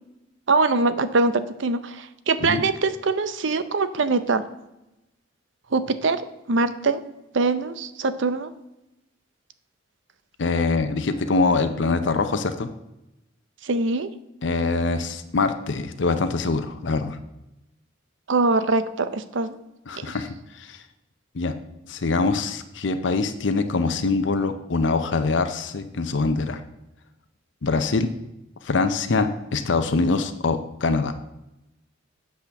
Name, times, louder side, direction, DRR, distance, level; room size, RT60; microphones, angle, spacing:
voice 1, 0.5-4.4 5.7-6.2 6.5-7.0 7.3-8.5 13.6-14.1 18.3-19.6 19.9-20.1, right 3 dB, 70° right, 12 dB, 0.6 m, -23 dB
voice 2, 10.4-12.7 14.4-17.2 19.9-20.8 21.3-21.5 21.9-26.6 27.6-28.1 28.6-31.1, left 3 dB, 65° left, 9 dB, 0.6 m, -24 dB
8.4 x 5.0 x 6.9 m, 0.91 s
head